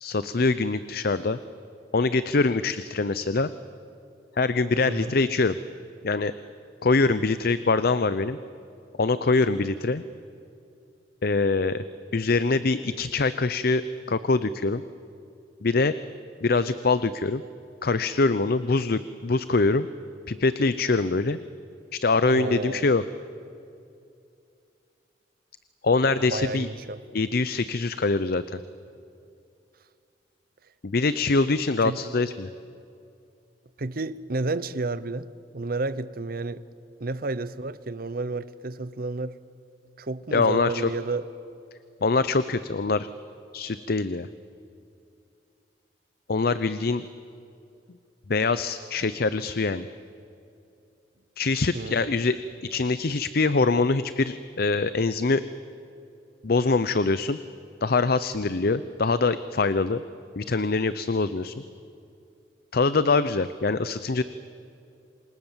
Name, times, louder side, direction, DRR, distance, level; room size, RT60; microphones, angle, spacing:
voice 1, 0.0-1.4 1.9-3.5 4.4-5.6 6.0-6.3 6.8-8.4 9.0-10.0 11.2-11.8 12.1-13.8 14.1-14.8 15.6-16.0 16.4-17.4 17.8-19.9 20.3-21.4 21.9-23.0 25.8-26.7 27.1-28.6 30.8-32.5 40.3-40.9 42.0-43.1 43.5-44.3 46.3-47.1 48.3-49.9 51.4-52.4 52.7-55.4 56.4-57.4 57.8-60.0 60.4-61.6 62.7-64.2, left 3 dB, 60° left, 0.7 m, -24 dB
voice 2, 22.3-22.9 26.2-27.0 31.8-32.0 33.8-36.6 37.0-39.4 40.0-41.3 51.7-52.2, right 3 dB, 55° right, 0.9 m, -31 dB
27.5 x 26.0 x 7.4 m
head